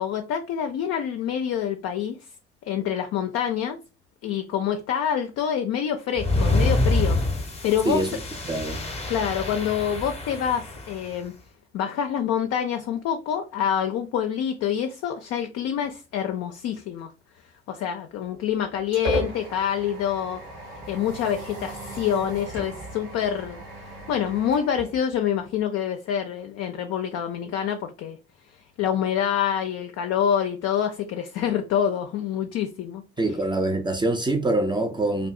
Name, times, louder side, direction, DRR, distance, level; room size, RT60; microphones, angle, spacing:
voice 1, 0.0-2.2 2.7-3.8 4.2-8.0 9.1-11.3 11.7-17.1 17.7-20.4 20.9-23.6 24.1-28.2 28.8-33.0, left 9 dB, 50° left, 0.4 m, -26 dB
sound 1, 6.2-11.1, left 2 dB, 20° left, 0.7 m, -26 dB
voice 2, 8.5-8.8 33.2-35.3, right 2 dB, 15° right, 0.4 m, -24 dB
sound 2, 18.2-25.6, right 1 dB, 75° right, 1.2 m, -36 dB
2.6 x 2.2 x 2.4 m
figure-of-eight pair, 40°, 32 cm